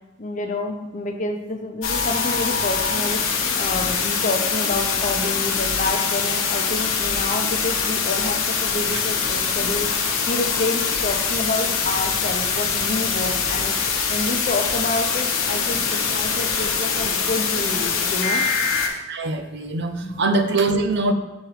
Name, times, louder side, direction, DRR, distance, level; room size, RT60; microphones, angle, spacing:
voice 1, 0.2-18.5 20.0-20.2, left 2 dB, 40° left, 4 dB, 0.8 m, -28 dB
sound 1, 1.8-18.9, left 5 dB, 80° left, 1.1 m, -23 dB
voice 2, 19.1-21.1, right 3 dB, 55° right, 9 dB, 0.5 m, -22 dB
6.3 x 4.6 x 4.9 m, 1.1 s
head